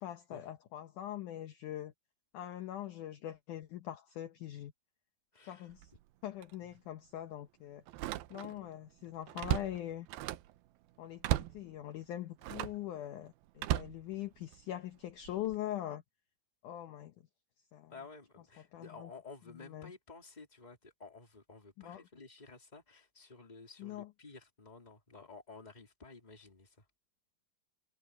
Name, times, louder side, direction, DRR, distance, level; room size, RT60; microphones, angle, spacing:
voice 1, 0.0-1.9 2.3-4.7 5.5-5.9 6.2-7.8 8.3-10.1 11.0-16.0 16.6-17.1 17.7-17.9 18.7-19.1 19.7-19.9 21.9-22.0 23.8-24.1, left 12 dB, 70° left, 2.1 m, -42 dB
voice 2, 5.3-5.8 6.6-6.8 17.9-26.9, left 4 dB, 10° left, 3.0 m, -53 dB
Slam, 5.7-6.0 6.4-6.5 7.9-8.7 9.0-10.6 11.2-11.7 12.4-12.9 13.6-14.7 15.2-15.6, right 14 dB, 80° right, 2.6 m, -36 dB
omnidirectional pair, 4.5 m